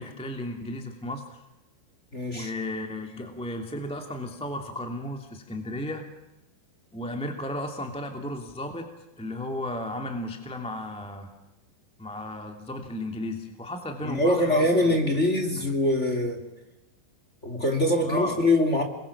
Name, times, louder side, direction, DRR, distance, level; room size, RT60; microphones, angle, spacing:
voice 1, 0.0-1.4 2.3-6.1 6.9-8.9 9.2-11.3 12.0-15.0 18.0-18.4, left 1 dB, ahead, 4 dB, 1.4 m, -34 dB
voice 2, 2.1-2.5 14.0-16.4 17.4-18.8, left 1 dB, 20° left, 4 dB, 2.3 m, -23 dB
28.5 x 23.0 x 7.4 m, 0.96 s
omnidirectional pair, 5.4 m